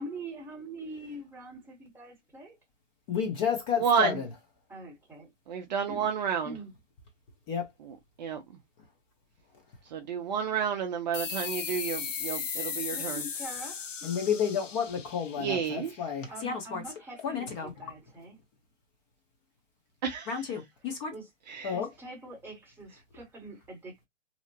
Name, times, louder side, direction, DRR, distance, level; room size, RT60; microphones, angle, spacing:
voice 1, 0.0-2.6 4.7-5.3 5.9-6.1 6.4-6.7 12.9-13.9 16.3-18.4 20.8-21.3 21.7-24.1, right 1 dB, 5° right, 0.9 m, -44 dB
voice 2, 3.1-4.3 7.5-7.7 14.0-16.8 17.2-17.7 20.3-21.1 21.6-21.9, left 7 dB, 25° left, 0.8 m, -31 dB
voice 3, 3.8-4.2 5.5-6.5 7.9-8.4 9.9-13.2 15.4-15.9 20.0-20.3 21.6-21.7, right 7 dB, 35° right, 0.5 m, -30 dB
sound 1, 11.1-16.3, left 6 dB, 85° left, 0.7 m, -37 dB
2.8 x 2.0 x 2.6 m
hypercardioid pair, 130°, 37 cm